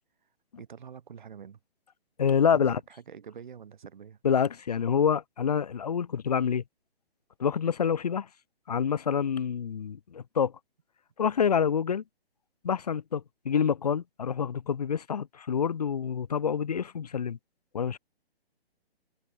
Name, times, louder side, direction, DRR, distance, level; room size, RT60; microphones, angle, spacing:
voice 1, 0.6-1.6 2.4-4.2, right 7 dB, 50° right, 7.8 m, -46 dB
voice 2, 2.2-2.8 4.2-6.6 7.4-8.3 8.7-10.5 11.2-12.0 12.6-17.4 17.7-18.0, left 7 dB, 40° left, 0.8 m, -27 dB
hypercardioid pair, 175°, 32 cm